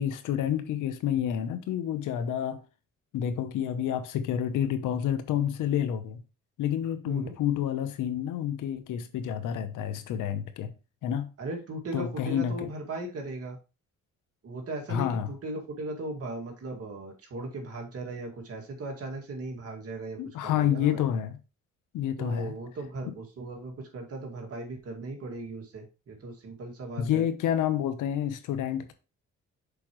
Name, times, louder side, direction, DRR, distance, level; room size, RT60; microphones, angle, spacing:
voice 1, 0.0-2.6 3.1-6.2 6.6-10.7 11.0-11.3 11.9-12.7 14.9-15.3 20.2-21.4 21.9-22.5 27.0-28.9, left 9 dB, 85° left, 0.9 m, -29 dB
voice 2, 11.4-13.6 14.4-21.0 22.2-27.2, right 2 dB, 50° right, 2.1 m, -38 dB
6.7 x 4.9 x 3.0 m
cardioid pair, 90°, 30 cm